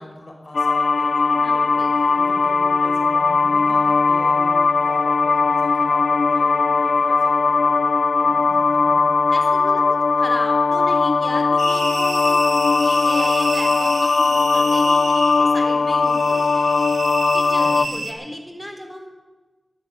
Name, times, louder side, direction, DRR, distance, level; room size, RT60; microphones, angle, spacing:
voice 1, 0.0-9.0 17.6-18.0, left 1 dB, 50° left, 0 dB, 5.0 m, -41 dB
sound 1, 0.5-17.9, left 4 dB, 80° left, 0.4 m, -18 dB
voice 2, 1.4-2.2 9.3-16.7 17.3-19.1, equal, 5° left, 2 dB, 3.7 m, -35 dB
sound 2, 11.6-18.1, right 3 dB, 80° right, 1.9 m, -30 dB
11.5 x 10.5 x 9.0 m, 1.2 s
cardioid pair, 40°, 0 cm